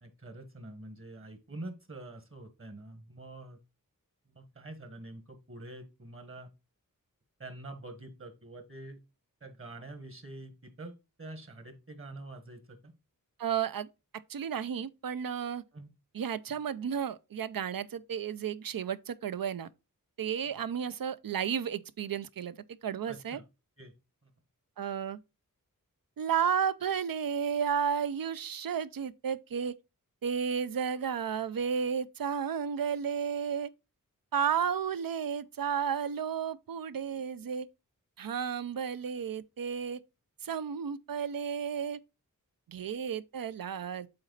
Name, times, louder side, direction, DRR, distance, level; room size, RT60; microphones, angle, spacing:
voice 1, 0.0-3.6 4.2-6.5 7.4-9.0 9.4-10.9 11.2-12.9 15.7-15.9 20.5-20.6 23.1-23.4 23.8-23.9 24.2-24.3, right 2 dB, 40° right, 1.4 m, -46 dB
voice 2, 13.4-13.9 14.3-15.6 16.1-19.7 20.2-22.6 22.8-23.4 24.8-25.2 26.2-29.7 30.2-33.7 34.3-37.7 38.2-40.0 40.4-42.0 42.7-44.1, right 7 dB, 75° right, 0.5 m, -32 dB
7.8 x 4.2 x 3.9 m
wide cardioid pair, 90°, 34 cm